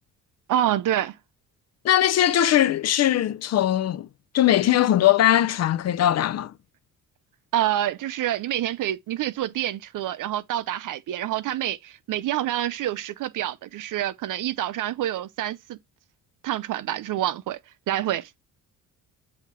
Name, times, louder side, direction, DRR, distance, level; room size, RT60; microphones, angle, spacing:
voice 1, 0.5-1.2 7.5-15.8 16.4-17.6 17.9-18.3, right 12 dB, 65° right, 0.7 m, -27 dB
voice 2, 1.8-4.1 4.3-6.5, left 12 dB, 50° left, 0.5 m, -20 dB
8.3 x 2.9 x 4.7 m
cardioid pair, 105°, 34 cm